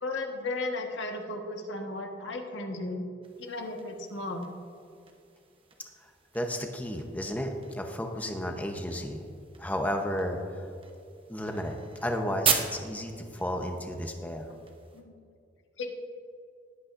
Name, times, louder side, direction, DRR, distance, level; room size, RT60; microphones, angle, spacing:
voice 1, 0.0-3.1 3.4-4.5 14.5-14.6 14.9-15.1 15.8-15.9, left 2 dB, 85° left, 2 dB, 1.4 m, -35 dB
sound 1, 3.2-15.0, right 6 dB, 30° right, 0.9 m, -38 dB
voice 2, 6.3-9.2 9.6-10.6 11.3-11.8 12.0-14.5, equal, 10° left, 3 dB, 0.8 m, -33 dB
19.0 x 8.7 x 2.6 m, 2.4 s
head